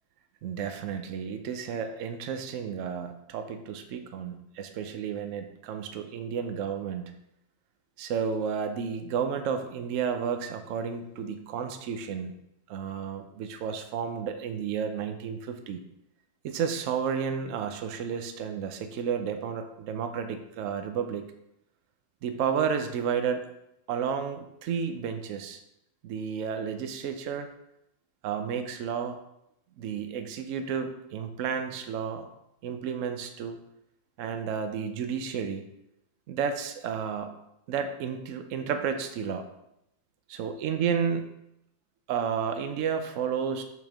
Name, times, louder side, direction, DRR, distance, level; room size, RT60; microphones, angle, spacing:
voice 1, 0.4-7.1 8.0-12.3 12.7-15.8 16.4-21.3 22.2-23.5 23.9-25.6 26.0-27.5 28.2-29.2 29.8-32.3 32.6-33.6 34.2-35.7 36.3-37.3 37.7-39.5 40.3-41.3 42.1-43.6, right 7 dB, 85° right, 7 dB, 0.7 m, -32 dB
6.3 x 5.2 x 3.5 m, 0.80 s
omnidirectional pair, 2.0 m